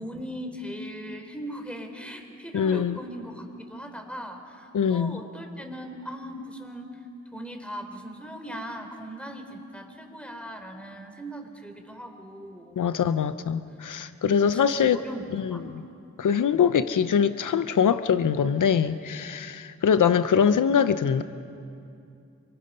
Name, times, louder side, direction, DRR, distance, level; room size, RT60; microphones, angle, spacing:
voice 1, 0.0-7.0 7.3-12.8 14.2-15.6, equal, 5° left, 4 dB, 3.8 m, -39 dB
voice 2, 2.5-3.0 4.7-5.2 12.8-15.0 15.3-15.8 16.2-21.2, left 7 dB, 90° left, 12 dB, 0.7 m, -23 dB
28.5 x 25.0 x 5.6 m, 2.5 s
cardioid pair, 50°, 30 cm